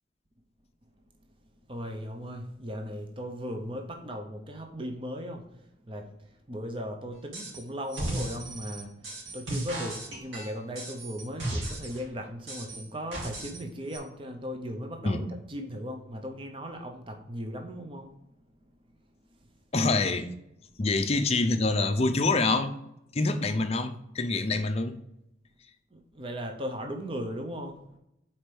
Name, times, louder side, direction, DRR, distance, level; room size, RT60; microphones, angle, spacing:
voice 1, 1.7-5.5 5.9-6.1 6.5-8.9 9.3-18.1 25.9-27.8, equal, 25° right, 4 dB, 0.7 m, -37 dB
sound 1, 7.3-7.6 7.9-12.0 12.5-13.6 13.9-14.0, right 1 dB, 80° right, 2.5 m, -35 dB
voice 2, 19.7-20.3 20.8-22.7 23.1-25.0, left 3 dB, 30° left, 8 dB, 0.5 m, -26 dB
5.0 x 4.3 x 6.1 m, 0.83 s
head